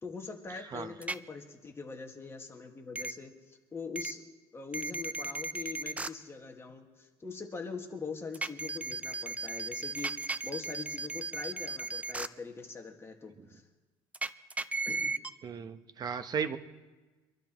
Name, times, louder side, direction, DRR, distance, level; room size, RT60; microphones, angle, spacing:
voice 1, 0.0-4.2 4.5-13.6 14.9-15.2, left 4 dB, 20° left, 2 dB, 1.8 m, -43 dB
sound 1, 1.0-1.2 3.0-3.1 4.0-4.1 4.7-6.1 8.3-12.3 14.1-15.3, right 3 dB, 10° right, 0.5 m, -35 dB
voice 2, 15.4-16.6, right 6 dB, 35° right, 9 dB, 1.0 m, -35 dB
25.5 x 13.0 x 3.1 m, 1.2 s
cardioid pair, 105°, 11 cm